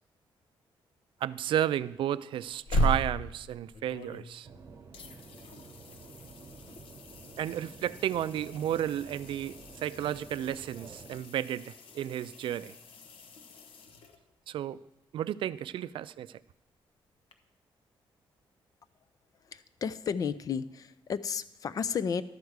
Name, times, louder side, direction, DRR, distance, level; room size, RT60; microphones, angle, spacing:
voice 1, 1.2-4.5 7.4-12.8 14.5-14.8 15.1-16.3, right 11 dB, 65° right, 15 dB, 0.3 m, -32 dB
sound 1, 2.4-4.6 4.9-14.5 17.3-17.4, equal, 75° left, 0.9 m, -38 dB
sound 2, 4.4-11.2, right 4 dB, 35° right, 1.1 m, -51 dB
voice 2, 19.5-22.2, left 6 dB, 40° left, 15 dB, 0.4 m, -33 dB
12.0 x 4.7 x 7.9 m, 0.87 s
wide cardioid pair, 175°, 9 cm